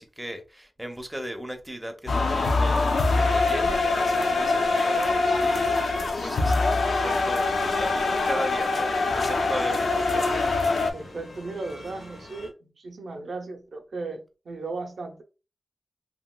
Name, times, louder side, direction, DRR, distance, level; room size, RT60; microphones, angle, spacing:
voice 1, 0.0-5.9 6.2-10.5, equal, 5° right, 0.5 m, -37 dB
sound 1, 2.1-10.9, left 3 dB, 65° left, 0.4 m, -24 dB
sound 2, 7.0-12.5, left 1 dB, 85° left, 1.1 m, -45 dB
voice 2, 10.9-15.2, right 3 dB, 65° right, 0.6 m, -36 dB
2.8 x 2.8 x 2.2 m
wide cardioid pair, 110°, 0 cm